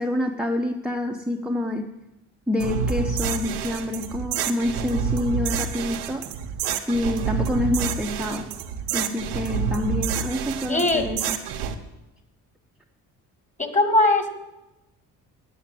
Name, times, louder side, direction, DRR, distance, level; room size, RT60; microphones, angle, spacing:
voice 1, 0.0-1.9 2.5-6.3 6.9-8.5 8.9-11.4, left 1 dB, ahead, 2 dB, 0.9 m, -27 dB
sound 1, 2.6-11.7, right 7 dB, 85° right, 1.0 m, -28 dB
voice 2, 10.7-11.1 13.6-14.3, left 2 dB, 20° left, 6 dB, 2.0 m, -20 dB
9.2 x 8.2 x 7.7 m, 0.99 s
supercardioid pair, 55°, 39 cm